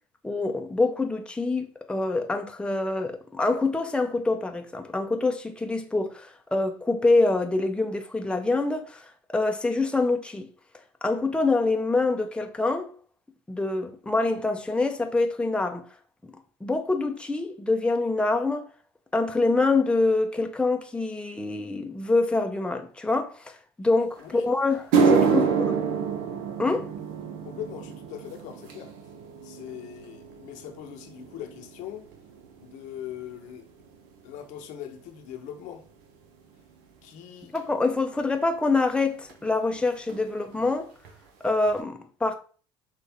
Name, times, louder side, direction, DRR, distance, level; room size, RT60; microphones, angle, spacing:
voice 1, 0.2-10.5 11.0-12.9 13.5-15.9 16.6-18.7 19.1-25.7 26.6-26.9 37.5-40.9 41.4-42.3, left 3 dB, 5° left, 0.6 m, -25 dB
sound 1, 24.2-24.3 24.7-33.2 33.5-34.0 34.7-34.8 37.6-37.7 39.3-39.4 39.6-39.8 40.1-40.6 41.0-41.1 41.7-41.8, right 5 dB, 75° right, 0.9 m, -28 dB
voice 2, 25.2-25.5 27.4-28.9 29.4-32.1 32.6-33.7 34.2-35.8 37.0-37.6, left 10 dB, 70° left, 0.9 m, -41 dB
6.1 x 2.4 x 3.5 m
supercardioid pair, 75°, 13 cm